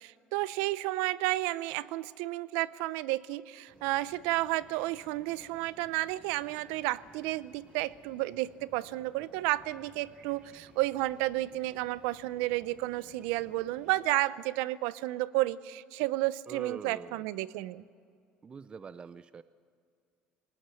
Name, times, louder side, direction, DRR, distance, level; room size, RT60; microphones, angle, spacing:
voice 1, 0.0-17.8, right 18 dB, 85° right, 18 dB, 0.6 m, -32 dB
sound 1, 3.7-14.1, right 2 dB, 55° right, 7.6 m, -59 dB
voice 2, 16.5-17.3 18.4-19.4, right 5 dB, 30° right, 14 dB, 0.5 m, -44 dB
20.5 x 19.0 x 7.7 m, 2.2 s
supercardioid pair, 100°, 3 cm